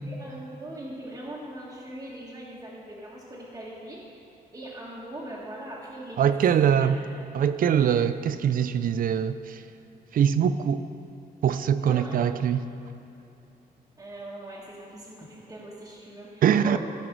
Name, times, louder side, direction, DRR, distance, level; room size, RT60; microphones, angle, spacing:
voice 1, 0.0-4.1 4.5-6.9 11.8-12.3 14.0-16.8, right 1 dB, 20° right, -8 dB, 1.4 m, -41 dB
voice 2, 6.2-7.0 7.3-9.6 10.1-10.8 11.4-12.7 16.4-16.8, right 8 dB, 60° right, 12 dB, 0.4 m, -23 dB
14.5 x 5.1 x 6.0 m, 2.8 s
wide cardioid pair, 140°, 16 cm